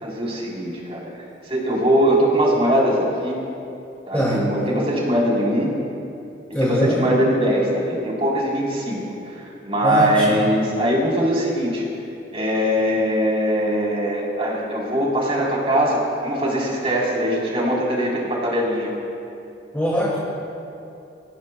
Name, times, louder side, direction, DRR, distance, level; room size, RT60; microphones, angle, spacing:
voice 1, 0.0-1.1 1.5-3.4 4.1-5.7 6.5-9.0 9.3-11.8 12.3-18.9, equal, 35° right, -4 dB, 3.9 m, -21 dB
voice 2, 4.1-4.7 6.5-7.1 9.8-10.5 19.7-20.2, equal, 10° left, -6 dB, 2.2 m, -22 dB
24.5 x 18.5 x 2.3 m, 2.7 s
head